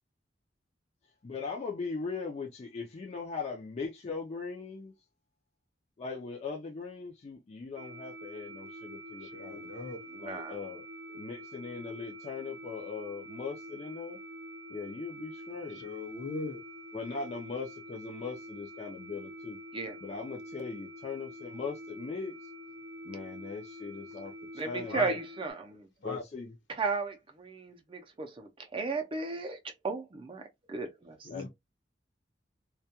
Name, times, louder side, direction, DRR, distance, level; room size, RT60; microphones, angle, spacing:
voice 1, 1.2-4.9 6.0-9.7 10.2-10.9 11.1-14.2 14.7-15.8 16.9-19.6 20.0-22.5 23.0-25.0 26.0-26.5 31.3-31.5, left 4 dB, 35° left, 0.4 m, -39 dB
sound 1, 7.8-25.5, equal, 80° right, 0.6 m, -46 dB
voice 2, 9.2-10.0 15.8-16.6 24.9-25.2 26.0-26.2 31.2-31.5, left 3 dB, 75° left, 0.9 m, -38 dB
voice 3, 10.1-10.6 19.7-20.0 24.5-25.9 26.7-31.3, right 4 dB, 30° right, 0.4 m, -35 dB
2.2 x 2.2 x 2.8 m
head